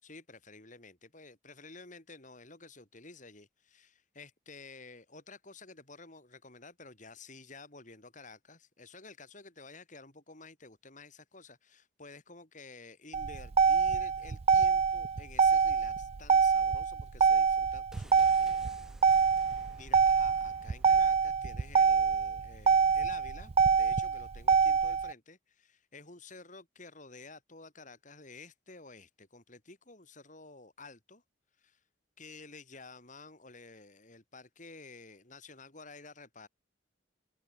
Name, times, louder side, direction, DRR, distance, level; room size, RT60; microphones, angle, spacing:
voice 1, 0.0-18.6 19.5-31.2 31.6-31.8 32.2-36.5, left 3 dB, 45° left, 4.3 m, -52 dB
Motor vehicle (road), 13.1-25.1, right 5 dB, 35° right, 0.3 m, -25 dB
sound 1, 17.9-21.7 21.9-22.0, equal, 5° right, 2.4 m, -54 dB
head